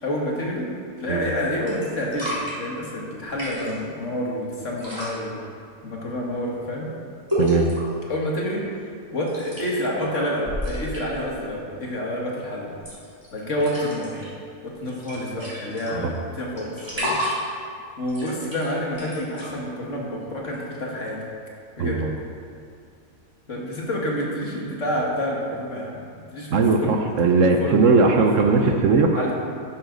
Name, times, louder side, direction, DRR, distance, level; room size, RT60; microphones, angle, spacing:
voice 1, 0.0-0.7 1.0-5.4 5.8-6.9 8.1-8.6 9.1-12.8 13.3-14.3 14.6-17.2 18.0-21.2 21.8-22.0 23.5-26.0 26.3-27.0 27.4-28.5 29.1-29.3, equal, 55° left, -3 dB, 2.1 m, -28 dB
sound 1, 1.0-1.3 1.7-2.5 3.2-3.8 4.7-5.2 7.3-7.9 9.3-9.8 10.1-11.2 12.7-13.3 13.5-14.3 14.7-14.8 15.0-16.2 16.6-17.6 18.0-19.5 20.5-20.6, left 1 dB, 15° right, 3.2 m, -30 dB
voice 2, 7.4-7.7 15.9-16.1 21.8-22.2 26.5-29.2, right 4 dB, 65° right, 4 dB, 1.1 m, -19 dB
11.5 x 9.8 x 3.9 m, 2.3 s
omnidirectional pair, 1.5 m